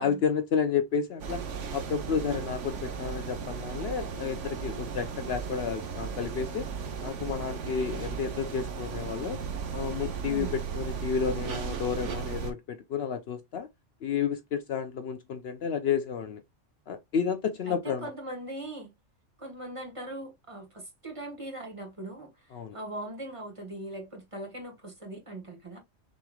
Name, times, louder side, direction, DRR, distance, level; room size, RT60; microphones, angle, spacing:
voice 1, 0.0-1.4 1.7-6.7 7.0-9.4 9.7-13.7 14.0-16.4 16.9-18.1 22.5-22.8, left 7 dB, 65° left, 0.8 m, -31 dB
sound 1, 1.2-12.5, right 6 dB, 80° right, 1.2 m, -36 dB
voice 2, 10.2-10.6 17.7-18.9 19.4-25.8, right 1 dB, 25° right, 1.5 m, -40 dB
6.2 x 3.3 x 2.3 m
omnidirectional pair, 1.3 m